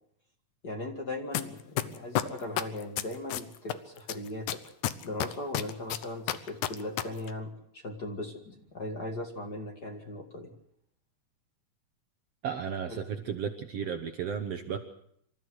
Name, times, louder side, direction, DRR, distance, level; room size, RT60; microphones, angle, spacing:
voice 1, 0.6-4.6 5.0-10.5 12.9-13.0, left 1 dB, 35° left, 3 dB, 2.1 m, -38 dB
sound 1, 1.3-1.4 1.8-3.7 4.1-7.0 7.3-7.4, left 12 dB, 70° left, 2.2 m, -29 dB
voice 2, 12.4-14.8, right 7 dB, 60° right, 6 dB, 1.9 m, -34 dB
27.0 x 14.0 x 7.9 m, 0.70 s
omnidirectional pair, 3.8 m